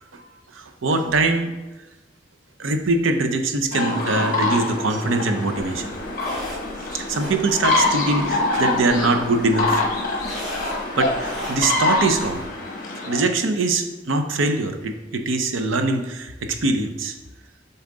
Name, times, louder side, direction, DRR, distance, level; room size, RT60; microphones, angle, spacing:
voice 1, 0.1-1.5 2.6-5.9 6.9-9.8 11.0-12.4 13.1-17.1, right 3 dB, 85° right, 6 dB, 0.7 m, -23 dB
sound 1, 3.7-13.2, left 2 dB, 45° left, 1.2 m, -25 dB
sound 2, 5.5-12.4, equal, ahead, 2.1 m, -37 dB
7.0 x 4.3 x 3.8 m, 1.2 s
head